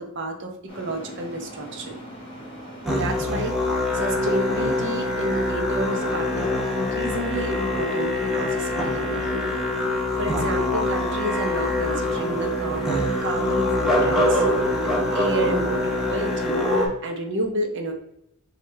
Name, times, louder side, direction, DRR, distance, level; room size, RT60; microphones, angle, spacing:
voice 1, 0.0-2.0 2.9-9.5 9.8-12.9 13.2-14.4 14.7-16.6 17.0-17.9, right 1 dB, 55° right, 3 dB, 0.8 m, -30 dB
sound 1, 0.7-16.4, equal, 25° left, 1.4 m, -40 dB
Musical instrument, 2.8-16.9, left 1 dB, ahead, 0.9 m, -24 dB
6.3 x 2.4 x 3.2 m, 0.77 s
head